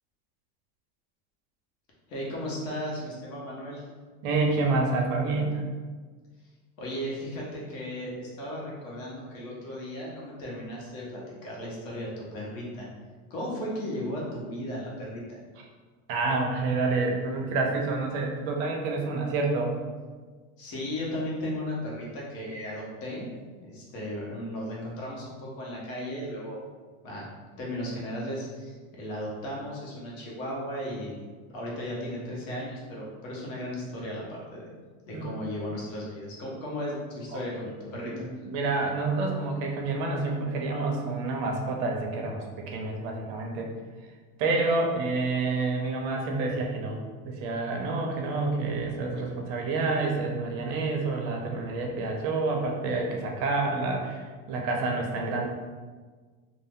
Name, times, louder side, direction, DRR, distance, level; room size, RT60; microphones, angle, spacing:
voice 1, 2.1-3.8 6.8-12.9 13.3-15.4 20.6-23.3 23.6-26.6 27.0-27.3 27.6-31.3 31.5-34.7 35.0-38.2, equal, 70° left, -4 dB, 1.1 m, -35 dB
voice 2, 4.2-5.6 16.1-19.8 35.1-35.4 37.3-37.4 38.1-43.7 44.4-47.0 47.2-55.5, right 3 dB, 50° right, 1 dB, 0.6 m, -28 dB
2.7 x 2.0 x 3.5 m, 1.5 s
supercardioid pair, 150°, 42 cm